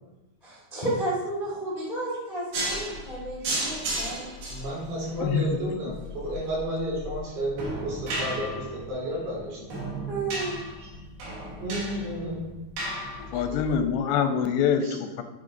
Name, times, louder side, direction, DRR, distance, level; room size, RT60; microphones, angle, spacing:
voice 1, 0.4-4.4 10.1-10.6 13.3-13.4, right 2 dB, 45° left, -7 dB, 0.5 m, -32 dB
sound 1, 2.5-13.8, right 1 dB, 65° right, 3.3 m, -34 dB
voice 2, 4.5-9.7 10.8-11.0 11.6-12.5 14.8-15.0, right 1 dB, 85° right, -6 dB, 5.2 m, -32 dB
voice 3, 11.0-11.6 13.3-15.2, left 7 dB, 85° left, 7 dB, 2.8 m, -26 dB
8.5 x 5.5 x 3.9 m, 1.1 s
omnidirectional pair, 5.0 m